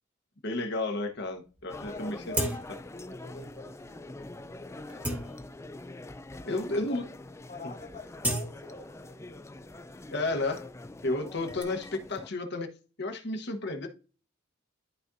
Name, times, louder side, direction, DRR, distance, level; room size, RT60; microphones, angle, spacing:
voice 1, 0.4-2.3 6.5-7.0 7.6-7.7 10.1-10.6 11.0-12.7 13.0-13.9, left 2 dB, 55° left, 1.2 m, -32 dB
sound 1, 1.2-1.3 1.6-1.7 2.3-3.0 3.4-3.5 4.2-4.3 4.7-5.9 6.6-6.7 6.9-7.3 7.6-9.4 9.7-11.6, right 1 dB, 5° right, 1.2 m, -36 dB
sound 2, 1.7-12.3, left 2 dB, 15° left, 0.4 m, -45 dB
voice 2, 1.8-2.6 2.9-4.3 4.7-5.6 6.4-7.0 7.5-9.5 11.4-11.7, left 3 dB, 30° left, 0.9 m, -46 dB
12.0 x 4.2 x 2.7 m
head